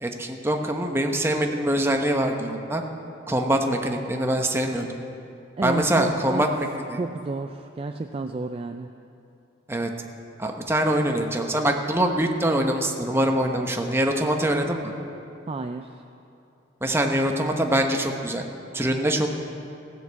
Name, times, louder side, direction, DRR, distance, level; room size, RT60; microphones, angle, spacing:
voice 1, 0.0-2.8 3.3-4.9 5.6-7.0 9.7-9.9 10.4-14.9 16.8-18.4 18.7-19.3, right 1 dB, 10° right, 3 dB, 0.9 m, -24 dB
voice 2, 5.6-6.5 7.0-8.9 15.5-16.0, right 3 dB, 30° right, 7 dB, 0.3 m, -31 dB
16.0 x 6.6 x 8.2 m, 2.7 s
head